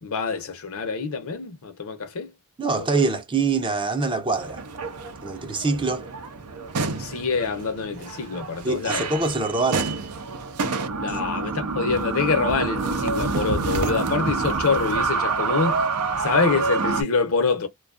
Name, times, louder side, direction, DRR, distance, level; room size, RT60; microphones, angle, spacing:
voice 1, 0.0-2.3 2.8-3.0 6.8-9.1 11.0-15.8 16.2-17.7, left 4 dB, 65° left, 0.7 m, -26 dB
voice 2, 2.6-4.6 5.2-6.1 8.6-10.0 11.1-11.2 11.5-11.6, right 3 dB, 20° right, 0.4 m, -24 dB
sound 1, 4.3-17.0, right 4 dB, 85° right, 0.6 m, -27 dB
2.5 x 2.3 x 2.4 m
head